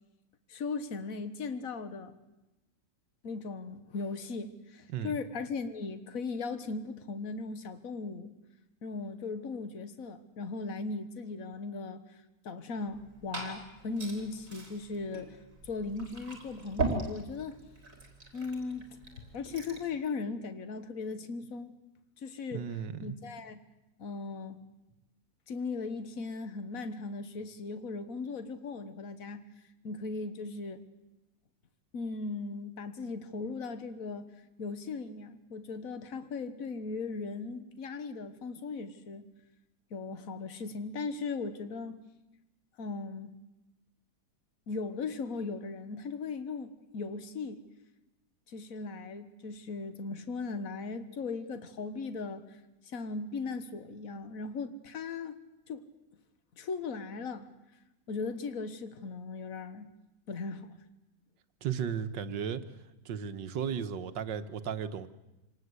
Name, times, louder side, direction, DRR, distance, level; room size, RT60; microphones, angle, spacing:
voice 1, 0.5-2.2 3.2-8.3 8.8-12.2 12.4-15.4 15.6-17.6 18.3-18.9 19.3-21.7 22.2-22.7 23.0-23.6 24.0-24.6 25.5-29.4 29.8-30.8 31.9-34.3 34.6-39.2 39.9-42.0 42.8-43.3 44.7-47.6 48.5-52.6 52.8-55.4 55.7-55.8 56.6-57.5 58.1-59.9 60.3-60.7, left 4 dB, 50° left, 10 dB, 1.8 m, -38 dB
Liquid, 12.8-19.9, right 3 dB, 45° right, 4.6 m, -39 dB
voice 2, 22.5-23.2 61.6-62.6 63.0-65.1, right 8 dB, 90° right, 11 dB, 1.8 m, -35 dB
26.5 x 19.0 x 8.2 m, 0.99 s
omnidirectional pair, 1.9 m